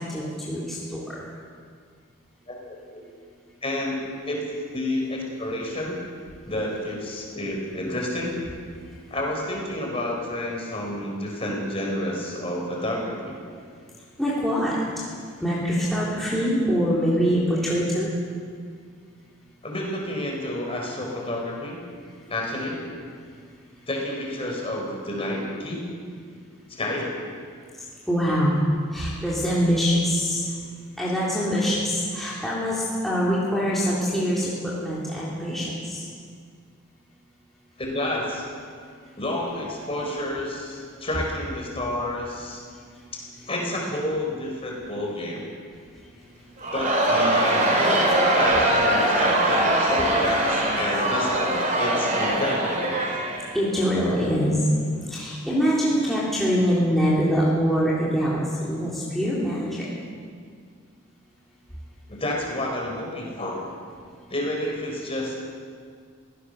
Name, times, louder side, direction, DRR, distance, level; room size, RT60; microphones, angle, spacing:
voice 1, 0.1-1.0 14.2-14.8 15.4-18.1 28.1-28.5 28.9-30.4 31.0-34.5 34.8-36.0 43.4-43.5 53.5-54.6 55.0-59.9, equal, ahead, -8 dB, 3.6 m, -24 dB
voice 2, 2.5-3.0 3.6-4.0 4.2-4.4 4.7-6.0 6.4-8.4 9.1-13.4 19.6-21.8 22.3-22.8 23.9-25.8 26.7-27.1 37.8-38.5 39.2-42.6 43.1-45.4 46.7-52.8 62.1-63.6 64.3-65.4, left 1 dB, 25° left, 0 dB, 4.7 m, -30 dB
Crowd, 46.6-53.9, right 1 dB, 35° right, 3.6 m, -22 dB
25.5 x 16.5 x 6.7 m, 2.1 s
head